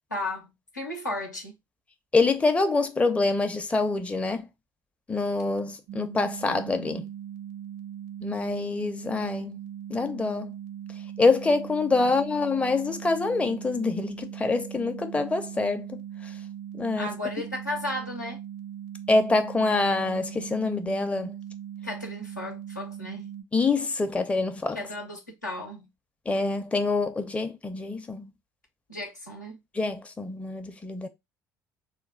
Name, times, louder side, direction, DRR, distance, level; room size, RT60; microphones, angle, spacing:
voice 1, 0.1-1.5 12.0-12.1 17.0-18.4 21.8-23.3 24.7-25.9 28.9-29.6, left 1 dB, 85° left, 0.7 m, -34 dB
voice 2, 2.1-4.5 5.1-7.1 8.2-9.6 9.9-10.5 11.2-16.0 16.8-17.1 19.1-21.3 23.5-24.8 26.3-28.3 29.7-31.1, left 3 dB, 15° left, 0.5 m, -25 dB
sound 1, 5.9-23.4, right 10 dB, 60° right, 0.5 m, -40 dB
3.1 x 2.2 x 4.2 m
figure-of-eight pair, 55°, 9 cm